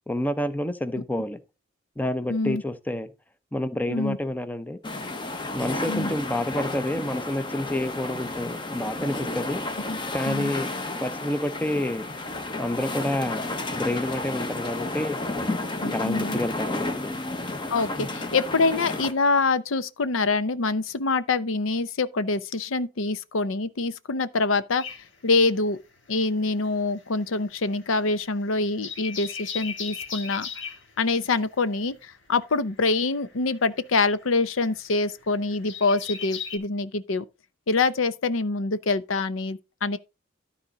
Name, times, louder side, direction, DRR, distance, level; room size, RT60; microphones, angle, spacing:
voice 1, 0.1-1.4 2.0-3.1 3.5-4.8 5.5-9.6 10.1-10.7 11.0-12.1 12.6-15.2 15.8-17.1 18.0-18.1, left 1 dB, 10° left, 0.6 m, -29 dB
voice 2, 2.3-2.6 3.9-4.2 5.9-6.1 9.9-10.0 10.3-10.5 15.8-16.4 17.7-24.8 25.2-25.8 26.1-30.5 31.0-37.2 37.7-40.0, left 3 dB, 80° left, 0.7 m, -25 dB
sound 1, 4.8-19.1, left 2 dB, 25° left, 1.0 m, -32 dB
sound 2, 24.8-26.2 26.5-36.6, left 7 dB, 65° left, 2.0 m, -38 dB
12.5 x 4.2 x 5.0 m
head